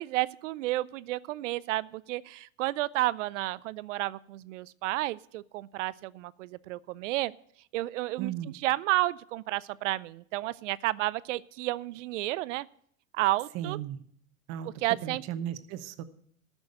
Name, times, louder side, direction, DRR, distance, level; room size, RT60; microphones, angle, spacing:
voice 1, 0.0-7.3 7.7-12.7 13.1-13.8 14.8-15.2, right 17 dB, 65° right, 20 dB, 0.6 m, -31 dB
voice 2, 8.2-8.5 13.5-14.0 14.5-14.7 15.0-16.0, right 10 dB, 40° right, 11 dB, 1.1 m, -35 dB
14.0 x 6.3 x 8.0 m, 0.64 s
supercardioid pair, 130°, 40 cm